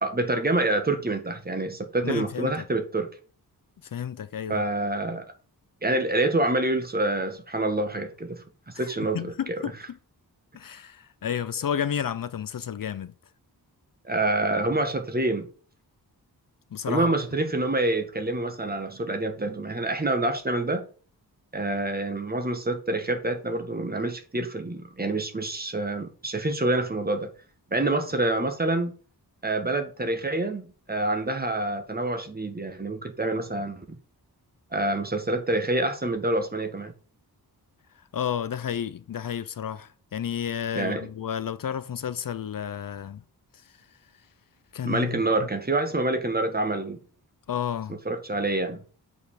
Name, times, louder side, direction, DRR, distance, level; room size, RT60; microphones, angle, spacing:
voice 1, 0.0-3.1 4.5-5.3 5.8-8.4 8.7-9.6 14.0-15.5 16.9-20.9 21.5-27.3 27.7-28.9 29.4-33.8 34.7-36.9 40.7-41.1 44.8-47.0 48.0-48.8, right 2 dB, 25° right, 1.9 m, -27 dB
voice 2, 2.0-2.5 3.9-4.6 9.0-9.7 10.5-13.1 16.7-17.1 38.1-43.2 44.7-45.5 47.5-48.0, left 8 dB, 60° left, 0.7 m, -31 dB
8.2 x 5.6 x 6.4 m
wide cardioid pair, 110°, 38 cm